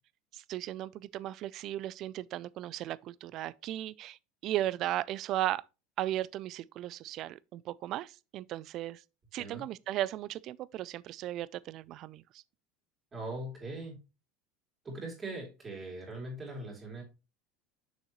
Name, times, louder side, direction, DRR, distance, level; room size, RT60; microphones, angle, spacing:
voice 1, 0.3-5.6 6.0-9.0 9.3-12.4, right 13 dB, 45° right, 0.3 m, -36 dB
voice 2, 13.1-14.0 14.8-17.0, right 2 dB, 20° right, 3.0 m, -40 dB
6.5 x 6.4 x 3.0 m
supercardioid pair, 150°, 0 cm